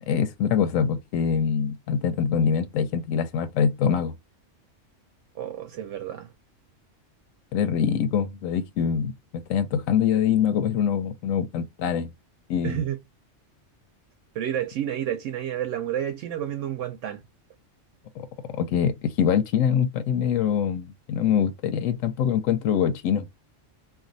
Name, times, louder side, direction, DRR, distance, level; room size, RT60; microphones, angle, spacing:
voice 1, 0.1-4.1 7.5-12.1 12.5-12.8 18.2-18.3 18.6-23.3, left 8 dB, 85° left, 1.0 m, -24 dB
voice 2, 5.3-6.3 12.6-13.0 14.3-17.2, right 10 dB, 75° right, 0.9 m, -30 dB
2.6 x 2.3 x 3.7 m
omnidirectional pair, 1.3 m